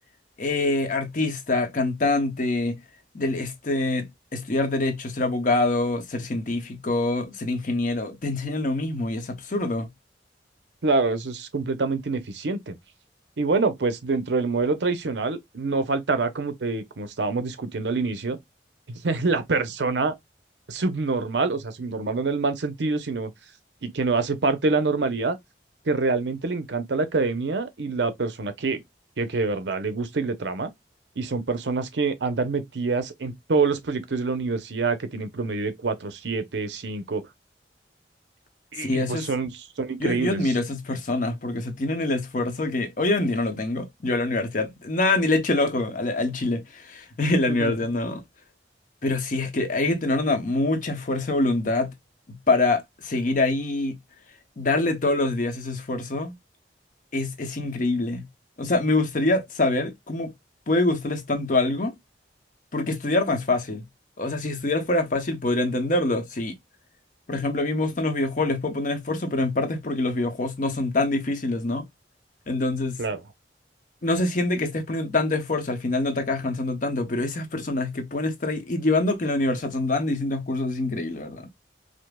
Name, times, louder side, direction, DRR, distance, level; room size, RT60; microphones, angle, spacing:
voice 1, 0.4-2.8 3.1-9.9 38.8-39.3 40.0-48.2 49.0-51.9 52.3-54.0 54.6-56.3 57.1-58.3 58.6-60.3 60.7-61.9 62.7-63.8 64.2-66.6 67.3-71.9 72.5-73.0 74.0-81.5, left 2 dB, 45° left, 0.8 m, -25 dB
voice 2, 10.8-12.7 13.4-18.4 18.9-20.1 20.7-23.3 23.8-25.4 25.9-28.8 29.2-30.7 31.2-37.2 38.7-40.5 47.5-47.7 73.0-73.2, right 3 dB, 80° right, 0.7 m, -26 dB
5.0 x 2.0 x 2.2 m
head